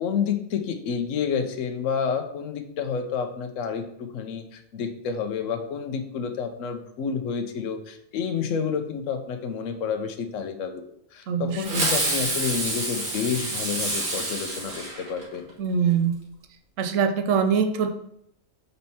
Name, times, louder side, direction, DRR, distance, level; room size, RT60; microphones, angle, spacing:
voice 1, 0.0-10.8 11.1-15.4, left 6 dB, 70° left, 5 dB, 1.0 m, -29 dB
voice 2, 11.3-11.8 15.6-16.2 16.8-17.9, right 6 dB, 70° right, 7 dB, 1.0 m, -23 dB
Fireworks, 11.6-15.5, right 2 dB, 85° right, 1.8 m, -28 dB
4.3 x 4.2 x 5.5 m, 0.73 s
omnidirectional pair, 1.5 m